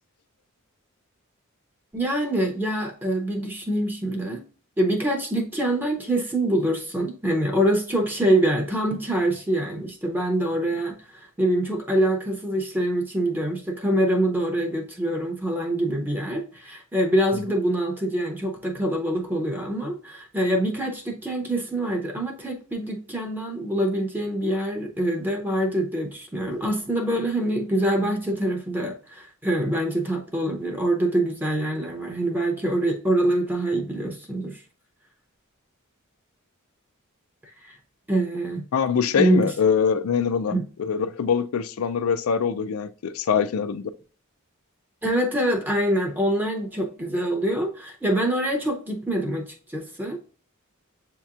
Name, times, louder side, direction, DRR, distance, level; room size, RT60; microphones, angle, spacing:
voice 1, 1.9-4.4 4.8-34.6 37.4-37.8 38.1-38.7 39.1-39.5 40.5-40.6 45.0-50.2, right 1 dB, 10° right, 0.6 m, -25 dB
voice 2, 38.7-43.9, left 6 dB, 80° left, 0.4 m, -23 dB
7.3 x 2.9 x 2.4 m
head